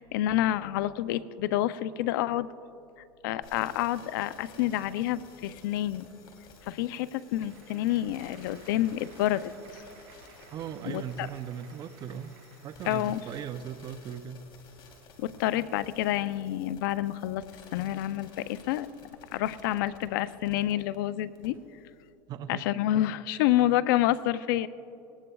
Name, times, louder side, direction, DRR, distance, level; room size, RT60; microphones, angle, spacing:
voice 1, 0.0-2.5 3.2-6.1 6.6-9.8 10.9-11.3 12.9-13.2 15.2-17.4 17.7-18.9 19.3-21.6 22.5-24.7, left 13 dB, 80° left, 15 dB, 0.5 m, -28 dB
sound 1, 3.4-21.0 21.3-21.5, left 3 dB, 50° left, 3.1 m, -54 dB
Applause, 6.5-14.1, right 7 dB, 70° right, 2.7 m, -57 dB
voice 2, 10.5-12.3 12.6-14.4 22.3-22.6, right 9 dB, 40° right, 11 dB, 0.5 m, -38 dB
19.5 x 19.0 x 2.3 m, 2.7 s
supercardioid pair, 120°, 11 cm